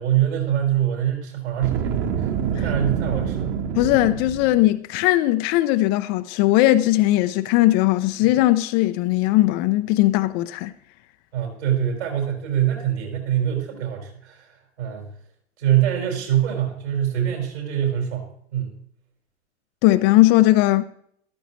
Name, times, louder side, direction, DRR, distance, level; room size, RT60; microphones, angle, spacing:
voice 1, 0.0-2.3 2.6-3.5 11.3-15.1 15.6-18.8, right 10 dB, 65° right, 5.3 m, -24 dB
Boom, 1.5-4.7, right 7 dB, 30° right, 1.3 m, -26 dB
voice 2, 3.7-10.7 19.8-20.8, left 16 dB, 30° left, 0.5 m, -18 dB
14.0 x 13.0 x 3.1 m
figure-of-eight pair, 100°, 35 cm